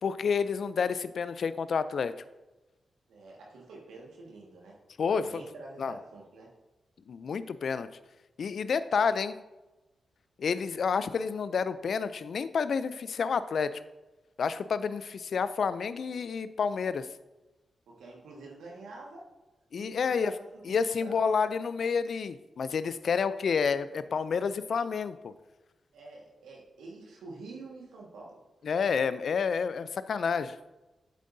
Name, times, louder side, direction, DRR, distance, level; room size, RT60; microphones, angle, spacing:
voice 1, 0.0-2.1 5.0-5.4 5.8-5.9 7.1-7.9 8.4-9.4 10.4-13.8 14.4-17.1 19.7-20.3 20.6-25.3 28.6-30.6, left 6 dB, 70° left, 14 dB, 0.4 m, -29 dB
voice 2, 3.1-4.8 5.0-6.5 17.9-19.2 19.7-21.2 25.9-28.4, right 3 dB, 90° right, -2 dB, 1.6 m, -47 dB
8.2 x 7.7 x 2.6 m, 1.1 s
cardioid pair, 50°, 0 cm